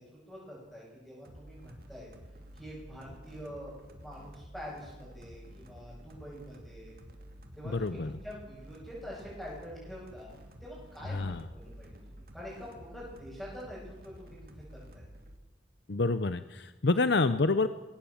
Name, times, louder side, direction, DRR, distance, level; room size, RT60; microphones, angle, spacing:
voice 1, 0.0-2.1 2.5-6.9 7.5-10.3 10.6-15.0, equal, ahead, -9 dB, 8.0 m, -46 dB
sound 1, 1.2-15.4, equal, 50° right, 2.6 m, -51 dB
voice 2, 7.6-8.1 11.1-11.4 15.9-17.7, left 3 dB, 70° left, 12 dB, 0.7 m, -28 dB
21.5 x 18.0 x 7.3 m, 1.2 s
head